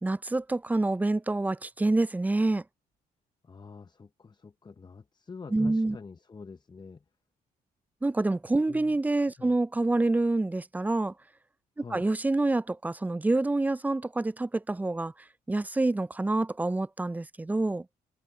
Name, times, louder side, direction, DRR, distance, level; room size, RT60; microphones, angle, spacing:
voice 1, 0.0-2.6 5.5-6.0 8.0-11.1 11.8-15.1 15.5-17.9, right 2 dB, 10° right, 0.3 m, -27 dB
voice 2, 3.4-7.0 8.7-8.9 9.4-9.6 11.8-12.0, left 4 dB, 25° left, 0.7 m, -46 dB
supercardioid pair, 70°, 17 cm